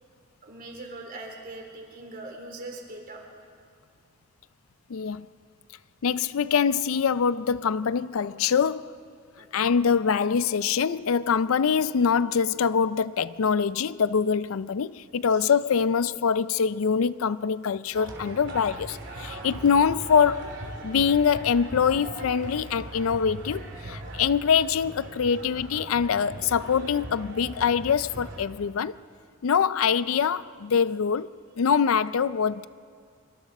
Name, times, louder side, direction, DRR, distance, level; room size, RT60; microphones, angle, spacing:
voice 1, 0.4-3.2 9.4-9.5 15.3-15.4, right 2 dB, 45° right, 3.5 m, -41 dB
voice 2, 4.9-5.3 6.0-9.0 9.5-20.6 20.8-29.0 29.4-32.7, left 6 dB, 75° left, 0.4 m, -24 dB
sound 1, 17.9-28.4, right 1 dB, 60° right, 3.0 m, -40 dB
26.5 x 23.5 x 4.2 m
head